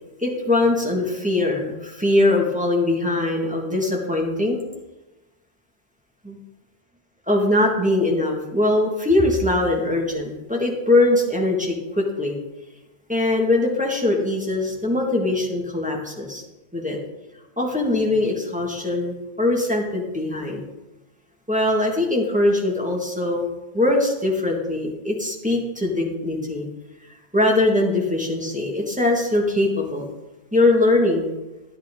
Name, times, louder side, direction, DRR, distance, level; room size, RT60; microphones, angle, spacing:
voice 1, 0.2-4.6 6.2-6.4 7.3-12.4 13.1-16.4 16.7-17.0 17.6-20.6 21.5-23.5 23.7-26.7 27.3-30.1 30.5-31.3, left 2 dB, 5° right, -2 dB, 1.8 m, -21 dB
11.0 x 11.0 x 3.7 m, 1.0 s
omnidirectional pair, 1.1 m